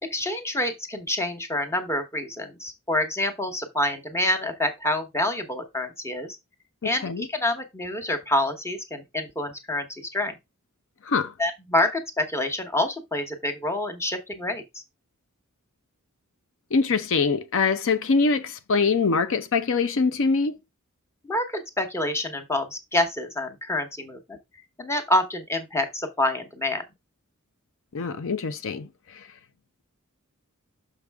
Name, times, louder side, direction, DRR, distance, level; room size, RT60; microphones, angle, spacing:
voice 1, 0.0-6.4 6.8-10.4 11.4-14.8 21.2-24.4 24.8-26.8, left 1 dB, 10° left, 1.0 m, -27 dB
voice 2, 6.8-7.3 11.1-11.3 16.7-20.5 27.9-28.9, left 4 dB, 65° left, 0.6 m, -23 dB
6.4 x 5.2 x 3.4 m
head